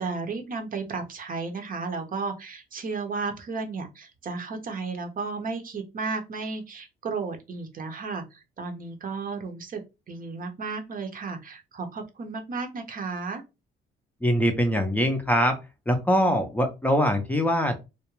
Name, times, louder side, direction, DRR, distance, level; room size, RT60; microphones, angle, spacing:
voice 1, 0.0-9.8 10.1-13.4, right 4 dB, 45° right, 0.6 m, -33 dB
voice 2, 14.2-15.6 15.9-17.8, equal, 10° left, 0.5 m, -23 dB
2.3 x 2.1 x 3.0 m
cardioid pair, 90°, 20 cm